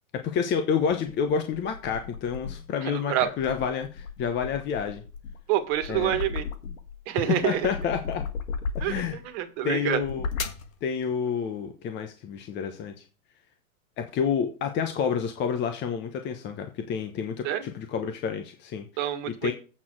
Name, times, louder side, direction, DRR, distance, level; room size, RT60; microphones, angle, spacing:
voice 1, 0.2-5.0 5.9-6.2 7.1-8.2 8.8-9.2 9.6-10.3 10.8-12.9 14.0-19.1 19.4-19.5, left 7 dB, 25° left, 6 dB, 1.0 m, -29 dB
sound 1, 0.9-2.8 3.3-7.0 7.4-9.3 9.9-10.7, left 5 dB, 70° left, 1.6 m, -35 dB
voice 2, 2.8-3.3 5.5-6.5 7.1-7.7 8.8-8.9 9.3-10.0 17.4-17.6 19.0-19.5, right 12 dB, 45° right, 8 dB, 1.7 m, -27 dB
8.4 x 6.7 x 4.7 m, 0.35 s
hypercardioid pair, 115°, 43 cm